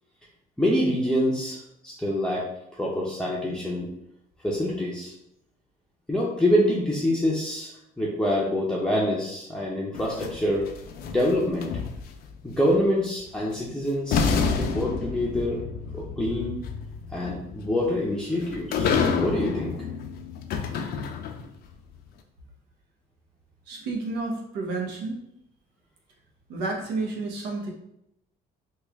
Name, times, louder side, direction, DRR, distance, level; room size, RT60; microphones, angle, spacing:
voice 1, 0.6-1.6 1.8-2.4 2.7-3.9 4.4-5.1 6.1-7.7 8.0-10.7 11.1-11.7 12.4-15.6 15.9-16.6 17.1-18.9 19.2-19.7, left 1 dB, 5° left, -5 dB, 0.5 m, -25 dB
sound 1, 9.9-12.3 13.5-13.6 14.1-21.6, left 5 dB, 65° left, 0.4 m, -29 dB
voice 2, 23.7-25.2 26.5-27.7, right 3 dB, 90° right, 0 dB, 0.8 m, -30 dB
3.1 x 2.3 x 3.4 m, 0.80 s
cardioid pair, 110°, 17 cm